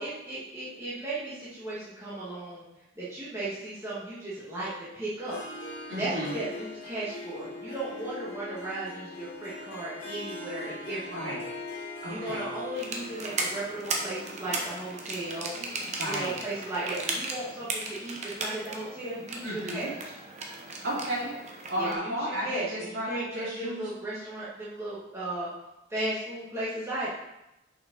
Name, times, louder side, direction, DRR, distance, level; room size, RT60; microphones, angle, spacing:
voice 1, 0.0-2.6 2.9-4.7 4.9-5.4 6.0-11.3 12.1-15.5 16.0-19.9 21.8-22.1 22.4-25.5 25.9-27.1, right 2 dB, 15° right, -10 dB, 1.6 m, -35 dB
Harp, 5.2-17.1, left 2 dB, 90° left, 1.5 m, -42 dB
voice 2, 5.9-6.3 11.1-11.4 12.0-12.4 16.0-16.3 19.4-19.9 20.8-23.9, equal, 55° right, -7 dB, 2.8 m, -33 dB
sound 1, 12.8-21.9, right 3 dB, 35° right, 0.9 m, -36 dB
6.7 x 5.6 x 3.9 m, 0.91 s
head